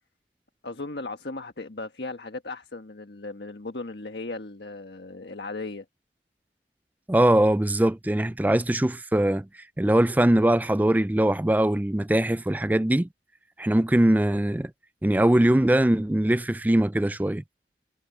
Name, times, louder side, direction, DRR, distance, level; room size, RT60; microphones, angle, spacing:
voice 1, 0.6-5.8, left 3 dB, 75° left, 1.5 m, -36 dB
voice 2, 7.1-9.5 9.8-13.1 13.6-14.7 15.0-17.4, right 1 dB, 10° right, 0.4 m, -21 dB
head